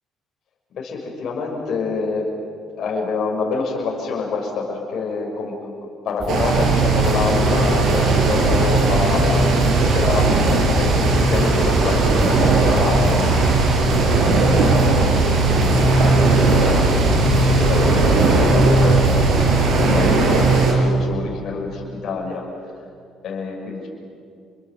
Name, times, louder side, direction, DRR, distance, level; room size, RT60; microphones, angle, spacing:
voice 1, 0.7-2.3 2.7-5.7 6.0-10.5 10.8-13.6 14.2-22.4 23.2-23.9, left 4 dB, 60° left, -2 dB, 6.1 m, -27 dB
sound 1, 6.2-19.6, right 3 dB, 40° right, 6.0 m, -24 dB
sound 2, 6.3-20.7, right 2 dB, 65° right, 5.7 m, -17 dB
30.0 x 22.5 x 7.6 m, 2.3 s
supercardioid pair, 80°, 0 cm